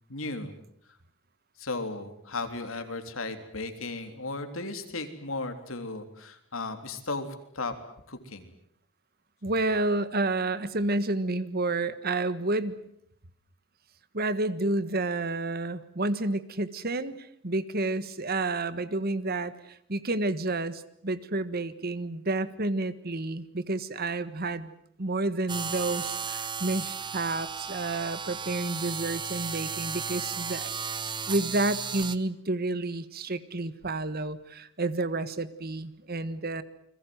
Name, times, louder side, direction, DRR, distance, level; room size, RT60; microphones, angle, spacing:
voice 1, 0.1-0.6 1.6-7.7 8.1-8.5, left 3 dB, 85° left, 7 dB, 3.5 m, -35 dB
voice 2, 9.4-12.8 14.1-24.7 25.0-30.7 31.3-36.6, right 2 dB, 50° right, 14 dB, 1.4 m, -30 dB
sound 1, 25.5-32.2, right 6 dB, 25° right, 1.1 m, -34 dB
29.5 x 22.0 x 7.9 m, 0.69 s
head